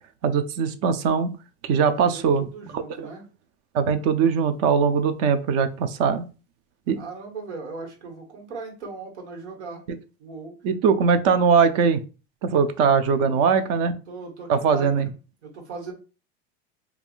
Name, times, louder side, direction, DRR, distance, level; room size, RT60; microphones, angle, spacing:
voice 1, 0.2-1.3 1.6-2.4 2.7-3.1 3.7-6.2 6.9-7.0 10.6-12.0 12.4-13.9 14.5-15.1, right 6 dB, 50° right, 10 dB, 0.5 m, -21 dB
voice 2, 1.9-3.2 6.9-9.8 10.2-10.6 12.9-15.1 15.4-15.9, right 4 dB, 90° right, 1 dB, 1.3 m, -39 dB
3.4 x 2.4 x 2.5 m, 0.33 s
supercardioid pair, 120°, 33 cm